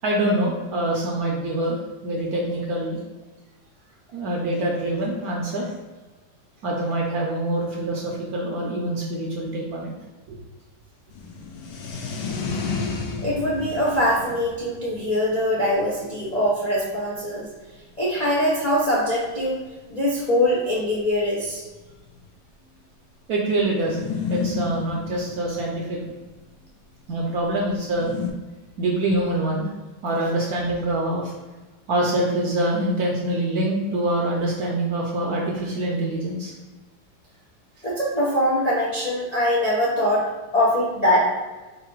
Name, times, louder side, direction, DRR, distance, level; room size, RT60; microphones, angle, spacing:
voice 1, 0.0-3.0 4.1-5.7 6.6-9.9 10.3-10.4 23.3-26.0 27.1-28.1 28.8-29.7 30.0-31.3 31.9-36.5, right 1 dB, 65° right, -2 dB, 1.0 m, -25 dB
sound 1, 11.1-17.2 17.9-18.0 18.2-18.3 18.4-18.7 19.6-19.7 19.9-20.0 20.8-22.3 23.8-26.4 27.8-28.3, left 5 dB, 80° left, 1.4 m, -32 dB
voice 2, 13.2-17.5 18.0-19.6 19.9-21.6 37.8-41.2, left 1 dB, 50° left, -7 dB, 0.4 m, -22 dB
3.9 x 2.6 x 4.4 m, 1.2 s
omnidirectional pair, 2.1 m